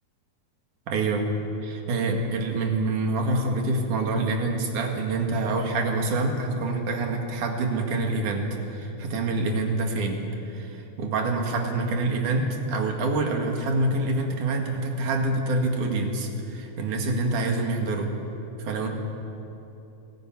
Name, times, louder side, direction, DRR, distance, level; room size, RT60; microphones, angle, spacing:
voice 1, 0.9-1.2 1.6-18.1 18.6-18.9, right 2 dB, 70° right, 2 dB, 3.4 m, -26 dB
21.5 x 13.5 x 9.6 m, 3.0 s
omnidirectional pair, 3.8 m